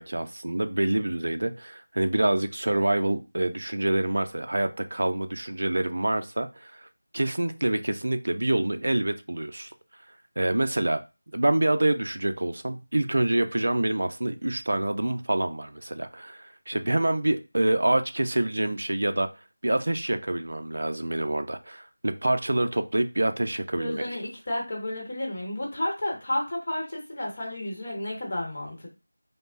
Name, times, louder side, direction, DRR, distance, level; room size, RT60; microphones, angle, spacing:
voice 1, 0.0-6.9 7.1-9.7 10.4-11.0 11.3-19.3 19.6-24.0, right 1 dB, 50° right, 8 dB, 0.4 m, -26 dB
voice 2, 23.8-28.9, left 1 dB, 30° left, -1 dB, 0.9 m, -31 dB
5.0 x 2.0 x 2.4 m, 0.29 s
figure-of-eight pair, 180°, 0 cm